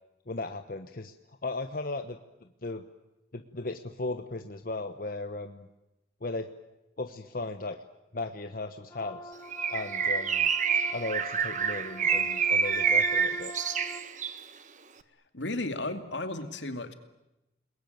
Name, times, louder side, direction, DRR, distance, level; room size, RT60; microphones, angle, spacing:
voice 1, 0.3-1.1 1.4-2.2 2.6-2.8 3.3-5.7 6.2-6.5 7.0-7.8 8.1-9.3 9.7-10.5 10.9-13.5, left 2 dB, 50° left, 7 dB, 1.1 m, -36 dB
sound 1, 8.9-14.0, equal, 15° left, 1.8 m, -44 dB
Bird, 9.5-14.4, right 6 dB, 40° right, 1.4 m, -27 dB
voice 2, 15.3-16.9, left 2 dB, 75° left, 8 dB, 2.4 m, -34 dB
30.0 x 20.5 x 9.4 m, 0.95 s
head